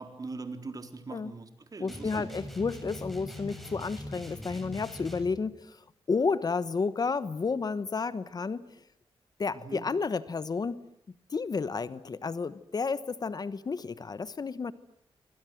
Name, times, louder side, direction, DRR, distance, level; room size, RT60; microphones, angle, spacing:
voice 1, 0.0-2.3 9.5-9.9, right 3 dB, 35° right, 8 dB, 3.9 m, -41 dB
voice 2, 1.8-5.8 6.1-8.6 9.4-10.8 11.3-14.7, left 4 dB, 40° left, 15 dB, 1.1 m, -31 dB
sound 1, 1.9-5.4, equal, ahead, 7.1 m, -42 dB
28.0 x 25.0 x 7.8 m, 0.73 s
wide cardioid pair, 115°, 10 cm